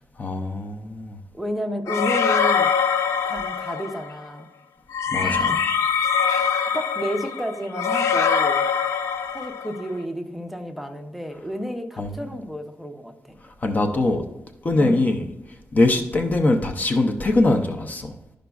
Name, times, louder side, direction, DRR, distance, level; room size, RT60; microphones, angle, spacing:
voice 1, 0.2-1.2 5.1-5.6 12.0-12.2 13.4-14.2 14.6-15.2 15.7-18.1, left 2 dB, 35° left, 5 dB, 0.5 m, -22 dB
voice 2, 1.3-2.7 3.3-4.5 5.2-5.7 6.3-8.7 9.3-13.4 14.8-15.1, equal, 5° right, 4 dB, 0.6 m, -31 dB
sound 1, 1.9-4.1 4.9-9.8, left 6 dB, 85° left, 0.4 m, -23 dB
12.0 x 5.0 x 2.3 m, 0.93 s
wide cardioid pair, 125°, 5 cm